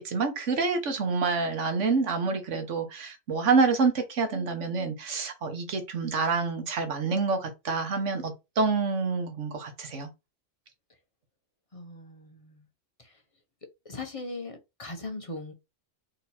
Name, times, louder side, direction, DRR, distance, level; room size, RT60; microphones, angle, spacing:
voice 1, 0.0-10.1, right 4 dB, 75° right, 1.4 m, -27 dB
voice 2, 11.7-12.6 13.0-13.2 13.8-15.5, left 2 dB, 35° left, 0.8 m, -39 dB
4.0 x 2.9 x 4.2 m
omnidirectional pair, 1.2 m